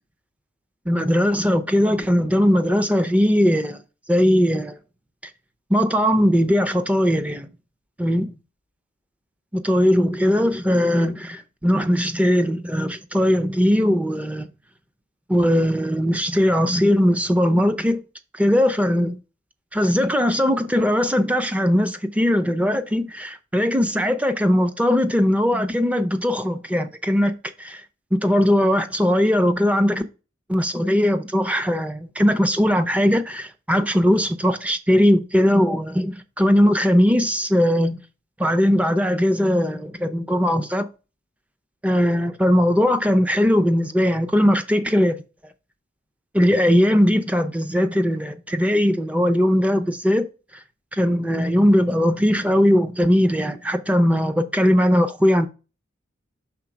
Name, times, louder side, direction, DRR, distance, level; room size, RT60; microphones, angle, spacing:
voice 1, 0.9-3.8 4.1-4.8 5.7-7.5 8.0-8.3 9.5-14.5 15.3-18.0 18.3-19.2 19.7-27.8 28.1-30.0 30.5-38.0 38.4-40.9 41.8-45.2 46.3-50.3 50.9-55.5, equal, 5° right, 0.5 m, -19 dB
5.8 x 3.9 x 5.2 m
head